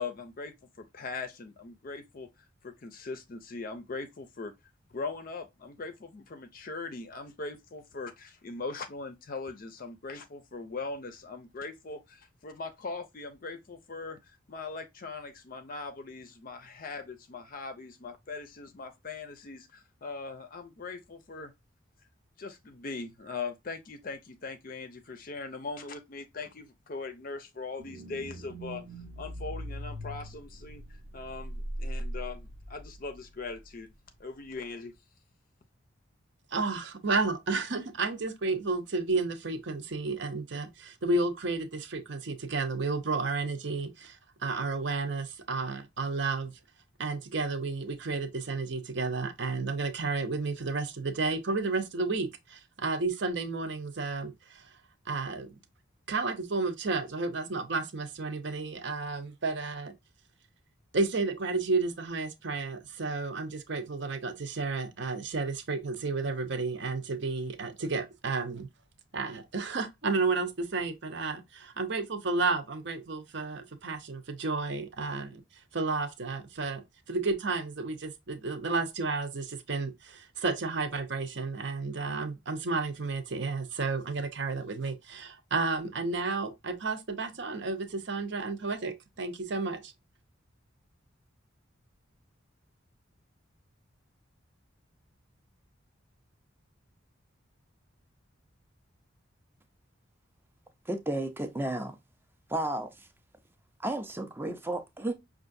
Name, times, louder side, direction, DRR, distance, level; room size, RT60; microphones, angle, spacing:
voice 1, 0.0-2.3 2.6-4.5 4.9-21.5 22.4-28.8 29.2-33.9 34.2-34.9, left 4 dB, 45° left, 0.5 m, -40 dB
sound 1, 27.8-33.5 33.8-33.9, right 1 dB, 85° right, 1.1 m, -40 dB
voice 2, 36.5-46.5 47.0-54.7 55.1-55.5 56.1-59.9 60.9-68.7 69.1-75.4 75.7-89.9, right 3 dB, 60° right, 0.7 m, -32 dB
voice 3, 100.9-102.0 102.5-103.1 103.8-105.1, right 1 dB, 10° right, 0.4 m, -33 dB
5.4 x 2.4 x 2.5 m
head